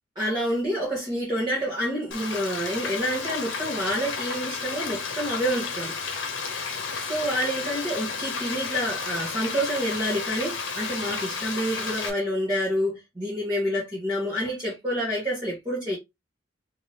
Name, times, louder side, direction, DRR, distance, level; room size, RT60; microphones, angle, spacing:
voice 1, 0.2-5.9 7.0-16.0, equal, 20° right, 1.5 m, -28 dB
Frying (food), 2.1-12.1, left 5 dB, 65° left, 0.9 m, -32 dB
3.5 x 3.0 x 2.9 m
head